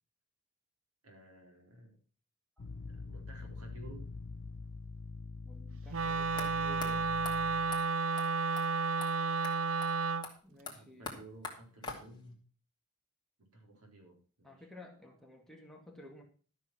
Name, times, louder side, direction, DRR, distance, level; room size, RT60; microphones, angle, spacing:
voice 1, 1.0-2.0 2.9-4.0 10.7-12.4 13.4-14.7, right 1 dB, 85° right, 2 dB, 3.9 m, -54 dB
sound 1, 2.6-7.9, left 3 dB, 55° left, 0.5 m, -45 dB
voice 2, 5.4-7.2 10.4-11.1 14.4-16.2, left 1 dB, ahead, 0 dB, 1.9 m, -53 dB
Wind instrument woodwind instrument, 5.9-10.3, right 4 dB, 60° right, 0.6 m, -32 dB
sound 2, 6.4-6.5 6.8-6.9 7.2-7.4 7.7-7.8 8.2-8.3 8.6-8.7 9.0-9.1 9.4-9.5 9.8-9.9 10.2-12.3, left 3 dB, 20° left, 2.4 m, -44 dB
13.0 x 6.5 x 6.0 m, 0.40 s
head